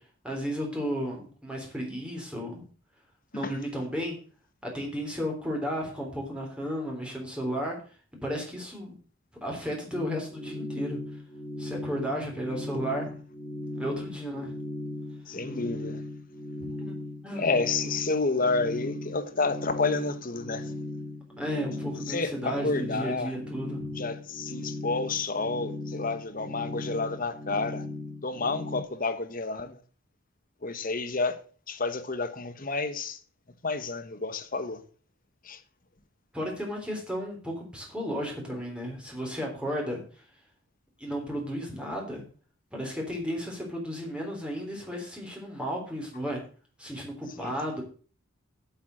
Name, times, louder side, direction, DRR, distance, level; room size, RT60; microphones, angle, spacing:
voice 1, 0.2-2.6 3.3-4.2 4.6-9.0 9.4-11.2 11.6-13.1 13.7-14.5 16.6-16.9 17.2-17.6 21.4-23.9 36.3-40.3 41.0-42.2 42.7-46.4 46.8-47.8, equal, 5° right, 3.5 m, -34 dB
sound 1, 9.9-28.8, left 2 dB, 10° left, 2.6 m, -38 dB
voice 2, 15.3-16.0 17.4-20.7 22.1-23.3 24.0-27.9 28.2-29.8 30.6-31.4 31.7-33.2 33.6-34.8 35.4-35.6 47.3-47.5, left 3 dB, 40° left, 1.2 m, -30 dB
8.8 x 7.3 x 7.5 m
head